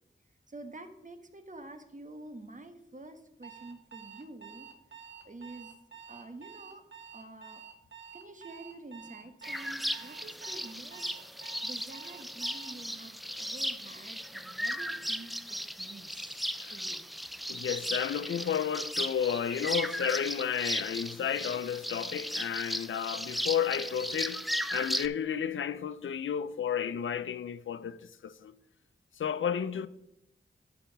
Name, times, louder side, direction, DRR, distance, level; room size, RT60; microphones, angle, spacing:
voice 1, 0.5-4.7 5.2-5.7 6.1-6.8 7.1-7.6 8.1-11.1 11.6-16.4 16.7-17.0, right 2 dB, 40° right, 1.2 m, -48 dB
Alarm, 3.4-12.8, right 7 dB, 65° right, 1.1 m, -49 dB
sound 1, 9.4-25.1, equal, ahead, 0.4 m, -36 dB
voice 2, 17.5-28.5 29.2-29.9, left 8 dB, 80° left, 0.5 m, -32 dB
11.5 x 4.2 x 5.2 m
cardioid pair, 45°, 20 cm